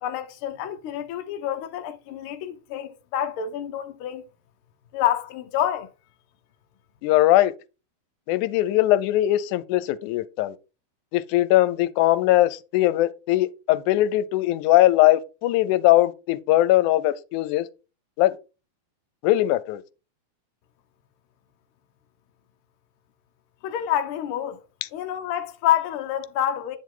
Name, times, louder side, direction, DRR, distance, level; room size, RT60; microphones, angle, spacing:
voice 1, 0.0-4.2 4.9-5.9 23.6-24.6 24.9-26.8, left 11 dB, 70° left, 1.3 m, -27 dB
voice 2, 7.0-7.5 8.3-10.6 11.1-17.7 18.2-18.4 19.2-19.8, left 15 dB, 85° left, 2.1 m, -20 dB
8.9 x 5.2 x 3.8 m
omnidirectional pair, 3.4 m